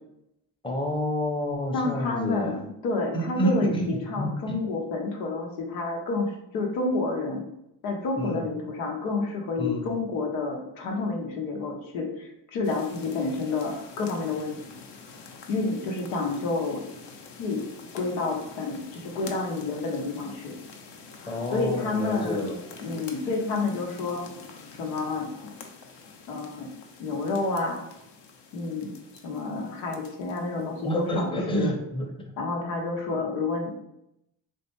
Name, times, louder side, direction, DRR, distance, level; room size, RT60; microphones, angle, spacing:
voice 1, 0.6-2.6 3.1-4.6 8.2-8.4 9.6-9.9 21.3-22.6 30.8-32.1, equal, 10° left, 1 dB, 0.7 m, -28 dB
voice 2, 1.7-7.4 7.8-14.5 15.5-16.8 17.4-17.6 17.9-20.6 21.5-22.4 22.8-24.2 24.8-25.5 26.3-26.7 27.0-27.8 28.5-28.9 29.2-31.7 32.4-33.8, left 3 dB, 90° left, 1 dB, 0.8 m, -29 dB
sound 1, 12.6-31.3, left 4 dB, 55° left, 0.7 m, -47 dB
3.1 x 2.6 x 2.9 m, 0.81 s
supercardioid pair, 60°, 50 cm